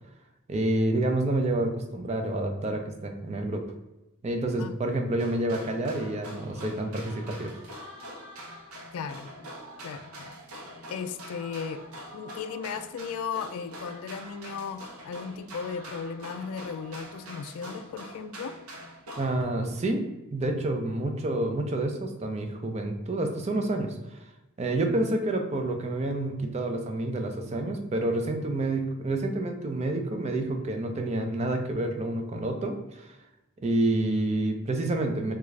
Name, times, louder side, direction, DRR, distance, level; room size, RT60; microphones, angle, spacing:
voice 1, 0.5-3.6 4.2-7.5 19.2-23.9 24.6-33.1 33.6-35.3, right 2 dB, 30° right, 4 dB, 0.4 m, -28 dB
sound 1, 5.2-19.4, equal, 80° right, 0.7 m, -44 dB
voice 2, 8.9-9.3 9.8-10.3 10.9-11.8 12.1-18.6, left 6 dB, 75° left, 12 dB, 0.3 m, -36 dB
3.6 x 2.3 x 3.1 m, 0.98 s
head